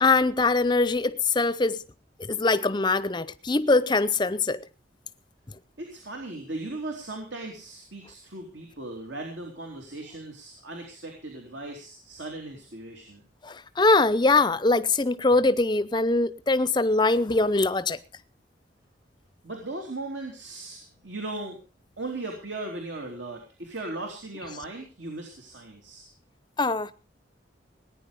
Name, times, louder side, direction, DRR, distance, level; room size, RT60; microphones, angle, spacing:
voice 1, 0.0-1.8 2.2-4.6 13.4-18.0 26.6-26.9, left 3 dB, 25° left, 0.6 m, -22 dB
voice 2, 5.8-13.2 19.4-21.6 22.0-26.1, right 2 dB, 75° right, 3.4 m, -37 dB
18.5 x 10.0 x 5.3 m
head